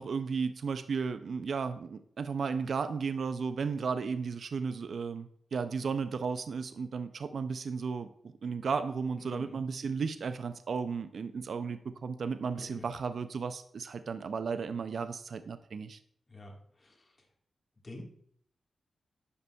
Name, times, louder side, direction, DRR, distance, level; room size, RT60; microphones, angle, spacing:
voice 1, 0.0-8.1 8.4-16.0, right 5 dB, 65° right, 11 dB, 0.3 m, -34 dB
voice 2, 9.2-9.6 12.5-12.9 16.3-16.9 17.8-18.0, left 1 dB, 35° left, 0 dB, 1.5 m, -47 dB
9.7 x 5.2 x 2.3 m, 0.66 s
wide cardioid pair, 90°, 0 cm